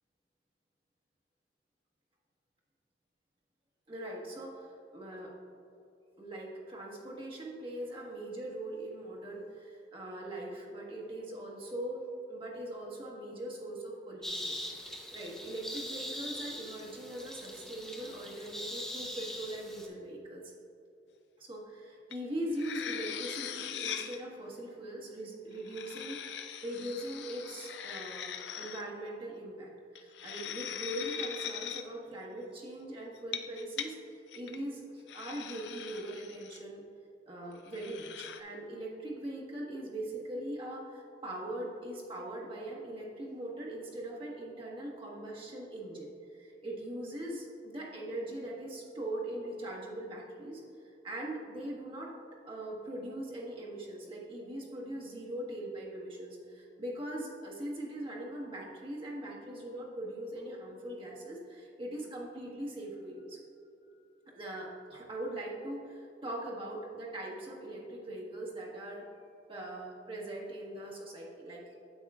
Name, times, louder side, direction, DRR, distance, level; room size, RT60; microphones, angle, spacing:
voice 1, 3.9-5.3 6.2-14.6 14.9-20.4 21.4-36.8 37.3-50.6 51.0-52.1 52.5-63.4 63.9-69.1 69.5-71.8, right 1 dB, 30° right, -4 dB, 1.4 m, -41 dB
sound 1, 14.2-19.9, left 1 dB, 5° left, 0.8 m, -42 dB
sound 2, 22.1-22.2 22.5-24.2 25.5-28.8 29.9-31.8 33.2-33.9 34.3-34.6 35.1-36.6 37.6-38.4, left 9 dB, 70° left, 0.5 m, -41 dB
9.0 x 8.2 x 2.4 m, 2.7 s
head